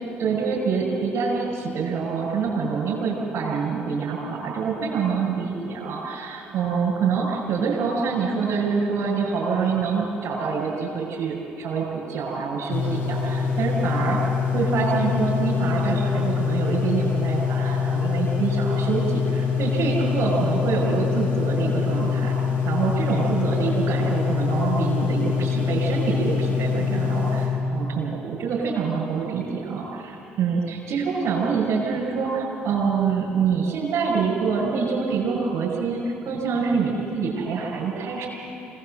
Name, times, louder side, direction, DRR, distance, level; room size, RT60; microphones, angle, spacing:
voice 1, 0.2-22.3 22.6-38.3, right 5 dB, 60° right, -6 dB, 6.2 m, -26 dB
sound 1, 12.7-27.5, left 6 dB, 70° left, 6.9 m, -24 dB
26.0 x 19.0 x 7.9 m, 2.8 s
hypercardioid pair, 55°, 5 cm